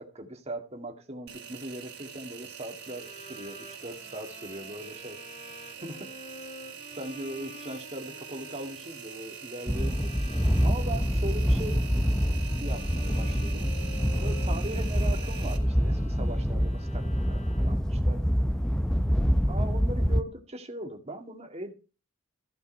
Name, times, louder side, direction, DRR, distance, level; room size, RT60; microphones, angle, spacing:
voice 1, 0.0-5.2 5.8-6.2 6.9-10.2 10.6-12.1 12.6-13.7 14.2-18.2 19.5-21.7, right 1 dB, 30° right, 2.1 m, -40 dB
Engine, 1.3-15.6, right 8 dB, 60° right, 3.6 m, -44 dB
Bowed string instrument, 2.8-18.1, left 2 dB, 35° left, 1.8 m, -49 dB
Just wind medium constant gusts, 9.7-20.2, equal, 5° left, 0.6 m, -26 dB
15.0 x 5.6 x 5.5 m
head